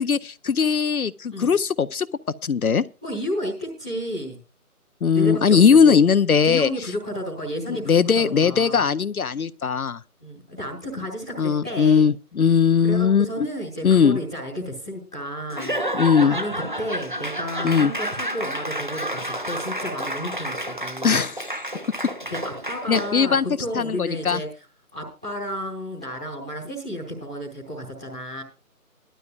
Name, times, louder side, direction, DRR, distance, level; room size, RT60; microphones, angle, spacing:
voice 1, 0.0-2.1 2.4-2.8 5.0-6.7 7.7-10.0 11.4-13.5 13.8-14.2 15.9-16.4 17.6-17.9 21.0-21.5 22.9-23.5 23.7-24.4, left 6 dB, 70° left, 0.6 m, -19 dB
voice 2, 3.0-4.4 5.1-6.0 6.4-8.8 10.2-12.1 12.8-21.2 22.3-24.5 24.9-28.4, equal, 5° right, 1.0 m, -32 dB
Laughter / Applause / Crowd, 15.5-23.3, right 1 dB, 35° right, 0.6 m, -30 dB
19.5 x 12.5 x 2.4 m
figure-of-eight pair, 155°, 45 cm